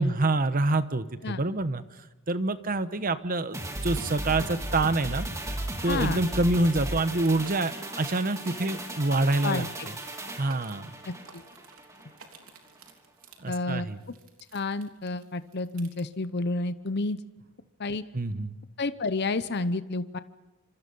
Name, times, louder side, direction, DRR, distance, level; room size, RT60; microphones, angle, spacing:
voice 1, 0.0-1.8 2.3-5.3 5.8-9.7 10.4-10.9 13.4-14.0 18.1-18.6, right 2 dB, 40° right, 12 dB, 1.1 m, -26 dB
sound 1, 3.5-12.1 12.4-12.5, right 1 dB, 15° right, 2.4 m, -36 dB
voice 2, 5.9-6.2 9.4-9.9 11.0-11.4 13.5-13.9 14.5-17.2 17.8-18.0 18.8-20.2, left 3 dB, 50° left, 13 dB, 0.8 m, -30 dB
sound 2, 7.1-16.0, right 4 dB, 75° right, 3.3 m, -52 dB
26.0 x 26.0 x 5.5 m, 1.0 s
head